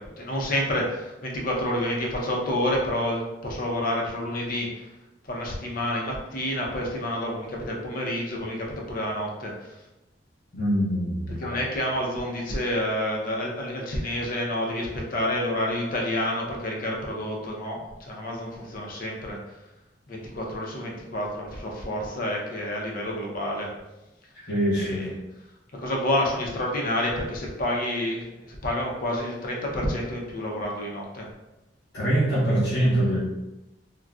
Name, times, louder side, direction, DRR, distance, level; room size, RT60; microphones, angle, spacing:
voice 1, 0.0-4.9 5.3-9.7 11.4-19.4 20.1-23.7 24.8-25.1 25.8-31.3, left 1 dB, 50° left, -1 dB, 0.6 m, -29 dB
voice 2, 10.5-11.6 24.3-25.0 31.9-33.2, right 1 dB, 75° left, -10 dB, 1.2 m, -24 dB
3.8 x 2.2 x 2.3 m, 0.98 s
head